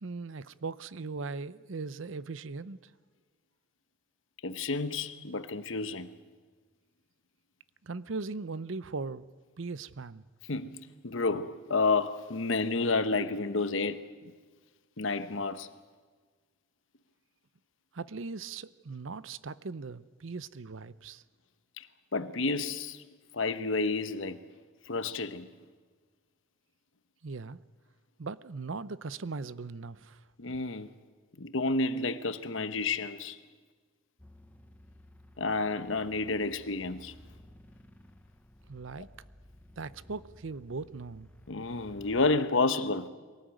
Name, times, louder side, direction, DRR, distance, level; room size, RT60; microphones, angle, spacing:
voice 1, 0.0-2.9 7.8-9.2 9.6-10.2 17.9-21.2 27.2-27.6 28.2-30.2 38.7-39.1 39.8-41.3, right 4 dB, 70° right, 0.7 m, -39 dB
voice 2, 4.4-6.1 10.5-14.0 15.0-15.7 21.8-21.9 22.1-23.0 23.3-24.4 24.9-25.5 30.4-30.9 31.4-33.4 35.4-37.1 41.5-43.1, left 3 dB, 70° left, 1.1 m, -30 dB
sound 1, 34.2-42.3, left 1 dB, 10° left, 0.9 m, -56 dB
22.5 x 18.0 x 9.1 m
head